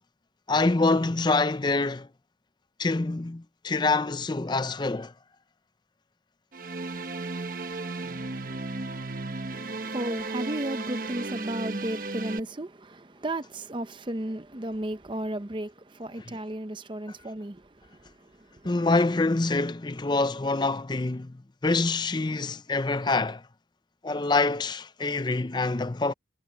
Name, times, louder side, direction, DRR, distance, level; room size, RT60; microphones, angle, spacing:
voice 1, 0.5-2.1 2.8-5.1 16.3-16.4 18.6-23.4 24.0-26.1, left 3 dB, 25° left, 0.6 m, -26 dB
sound 1, 6.5-12.4, right 3 dB, 50° right, 1.2 m, -34 dB
voice 2, 9.5-18.7, right 1 dB, 30° right, 0.8 m, -34 dB
head